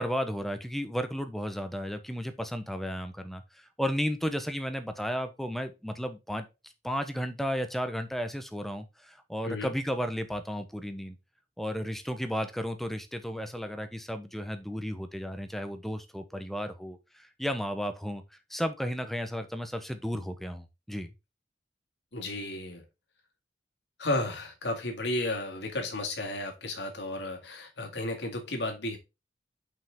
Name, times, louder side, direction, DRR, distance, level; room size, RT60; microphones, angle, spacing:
voice 1, 0.0-6.5 6.8-11.2 11.6-18.2 18.5-21.1, equal, ahead, 8 dB, 0.9 m, -33 dB
voice 2, 22.1-22.8 24.0-29.0, left 2 dB, 75° left, 2 dB, 2.0 m, -33 dB
5.8 x 5.6 x 3.5 m, 0.25 s
head